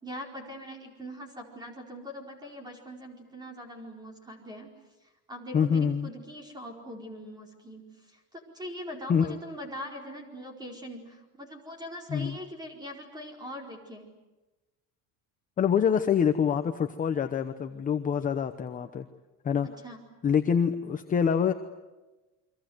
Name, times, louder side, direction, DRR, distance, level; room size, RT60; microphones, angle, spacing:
voice 1, 0.0-4.7 5.3-7.8 8.1-14.1 19.8-20.0, equal, 10° right, 2 dB, 4.5 m, -42 dB
voice 2, 5.5-6.1 9.1-9.4 12.1-12.4 15.6-19.1 19.4-19.7 20.2-21.5, left 7 dB, 20° left, 7 dB, 0.9 m, -25 dB
29.5 x 24.5 x 8.0 m, 1.1 s
cardioid pair, 175°, 41 cm